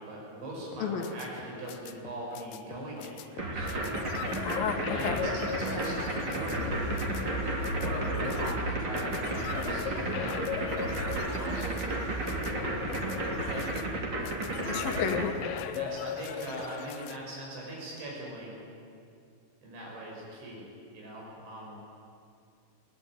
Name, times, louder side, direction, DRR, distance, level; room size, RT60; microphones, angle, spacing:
voice 1, 0.0-4.0 4.9-6.7 7.7-11.9 12.4-13.8 14.5-14.8 15.6-18.6 19.6-20.7 20.9-21.8, right 1 dB, 75° right, -2 dB, 8.5 m, -40 dB
sound 1, 0.7-17.2, left 8 dB, 85° left, 2.0 m, -39 dB
voice 2, 0.8-1.1 4.4-5.2 14.7-15.3, left 7 dB, 60° left, 6 dB, 2.8 m, -32 dB
sound 2, 3.4-15.3, right 2 dB, 30° right, 2.8 m, -33 dB
sound 3, 6.5-14.5, right 1 dB, 20° left, 2.7 m, -39 dB
23.5 x 18.5 x 9.1 m, 2.4 s
omnidirectional pair, 5.3 m